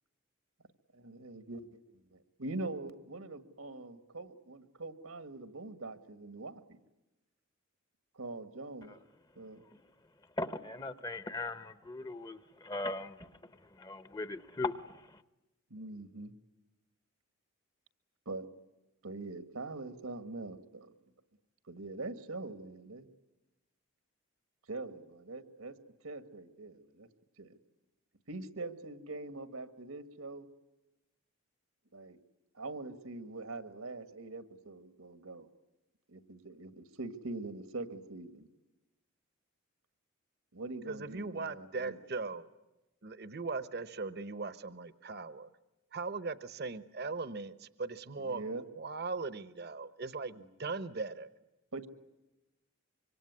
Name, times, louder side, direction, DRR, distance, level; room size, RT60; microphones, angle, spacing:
voice 1, 0.9-1.7 1.9-6.8 8.1-8.9 9.3-9.6 15.7-16.3 18.2-18.5 19.0-20.9 21.7-23.1 24.7-25.7 26.0-27.1 27.4-27.6 28.3-30.5 31.9-32.2 32.5-35.5 36.1-38.5 40.5-42.0 48.2-48.6 50.4-50.5 51.7-51.9, right 2 dB, 80° right, 1.8 m, -43 dB
voice 2, 10.4-13.2 13.8-14.7, left 2 dB, 20° left, 0.9 m, -38 dB
voice 3, 40.9-42.4 43.0-45.5 45.9-48.4 48.8-51.3, right 4 dB, 45° right, 0.9 m, -39 dB
25.5 x 24.5 x 9.6 m
head